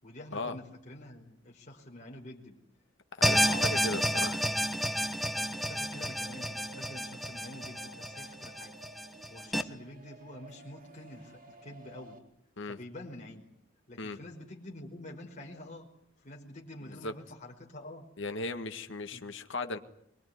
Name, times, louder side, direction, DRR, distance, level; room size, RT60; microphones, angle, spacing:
voice 1, 0.0-2.6 3.2-4.2 4.5-4.6 5.3-8.7 9.3-12.2 12.7-13.4 13.9-15.9 16.2-18.1 19.1-19.2, left 1 dB, 35° left, -2 dB, 5.1 m, -47 dB
voice 2, 3.2-4.4 12.6-12.8 14.0-14.2 17.0-17.1 18.2-19.8, left 2 dB, 65° left, 7 dB, 1.9 m, -37 dB
sound 1, 3.2-9.6, equal, ahead, 1.3 m, -30 dB
sound 2, 5.3-12.2, right 2 dB, 45° right, 3.5 m, -54 dB
23.5 x 22.5 x 9.6 m, 0.69 s
head